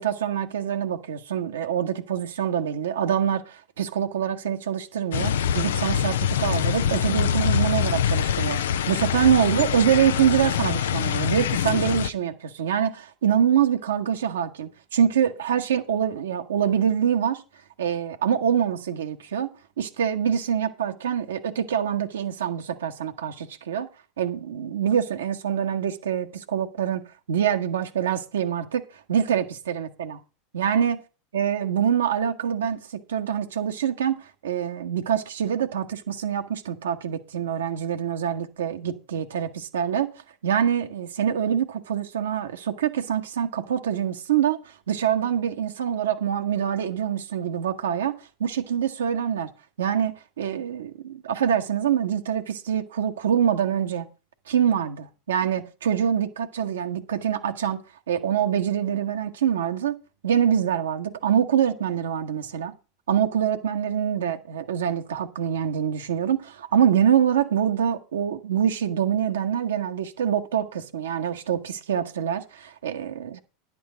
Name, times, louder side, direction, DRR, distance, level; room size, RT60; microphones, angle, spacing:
voice 1, 0.0-8.6 8.9-17.4 17.8-19.5 19.8-23.9 24.2-28.8 29.1-30.2 30.5-31.0 31.3-40.1 40.4-49.5 49.8-54.1 54.5-60.0 60.2-62.7 63.1-73.4, right 9 dB, 75° right, 1.0 m, -25 dB
sound 1, 5.1-12.1, left 9 dB, 75° left, 0.4 m, -24 dB
10.5 x 8.5 x 5.0 m
hypercardioid pair, 85°, 0 cm